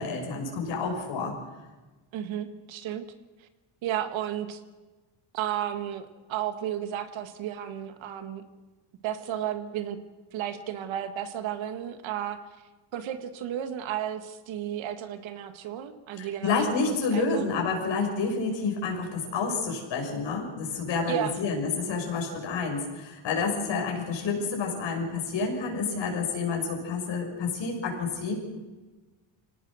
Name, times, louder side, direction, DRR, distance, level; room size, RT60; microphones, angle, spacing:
voice 1, 0.0-1.4 16.2-28.4, left 4 dB, 60° left, 2 dB, 6.6 m, -29 dB
voice 2, 2.1-3.0 3.4-3.5 3.8-4.6 5.3-8.4 9.0-10.0 10.3-12.4 12.9-17.5 21.1-21.4, right 10 dB, 70° right, 9 dB, 2.0 m, -33 dB
24.5 x 18.5 x 6.4 m, 1.2 s
cardioid pair, 100°, 49 cm